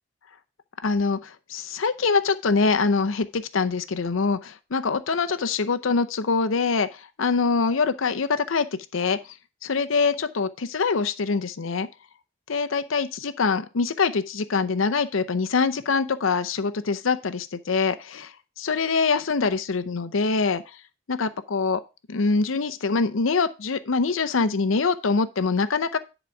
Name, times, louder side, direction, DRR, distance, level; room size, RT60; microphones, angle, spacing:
voice 1, 0.8-8.7 8.9-9.2 9.6-11.9 12.5-20.6 21.1-21.8 22.1-26.0, left 4 dB, 85° left, 0.7 m, -24 dB
10.5 x 4.1 x 5.8 m
head